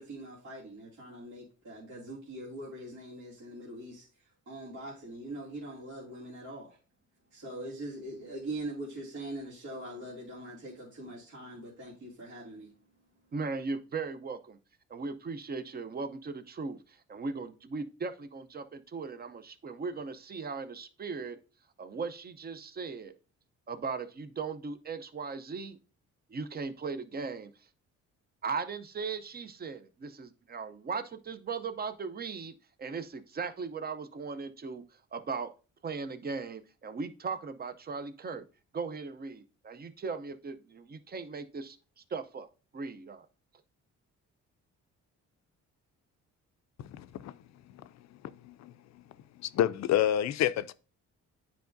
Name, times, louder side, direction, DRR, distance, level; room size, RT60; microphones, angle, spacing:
voice 1, 0.0-4.1 4.5-6.8 7.3-12.7, right 1 dB, 70° right, 2.5 m, -42 dB
voice 2, 13.3-14.6 14.9-21.4 21.8-23.1 23.7-25.8 26.3-27.5 28.4-34.8 35.1-35.5 35.8-38.4 38.7-41.8 42.1-42.5 42.7-43.3, right 4 dB, 30° right, 0.6 m, -38 dB
voice 3, 46.8-47.3 48.4-48.7 49.4-50.7, left 11 dB, 65° left, 0.4 m, -28 dB
9.3 x 4.7 x 2.6 m
cardioid pair, 90°, 30 cm